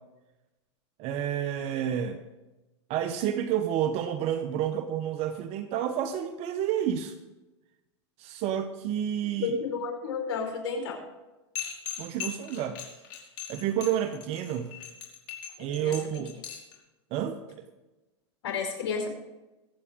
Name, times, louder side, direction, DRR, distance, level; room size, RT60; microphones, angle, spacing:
voice 1, 1.0-2.2 2.9-7.2 8.2-9.5 12.0-12.8 13.5-14.7 15.6-16.3 17.1-17.6, right 10 dB, 45° right, 9 dB, 1.0 m, -30 dB
voice 2, 9.4-11.0 15.6-15.9 18.4-19.1, left 5 dB, 70° left, 2 dB, 4.8 m, -31 dB
sound 1, 11.6-16.7, left 9 dB, 50° left, 4.9 m, -39 dB
23.0 x 8.4 x 3.7 m, 1.1 s
hypercardioid pair, 120°, 15 cm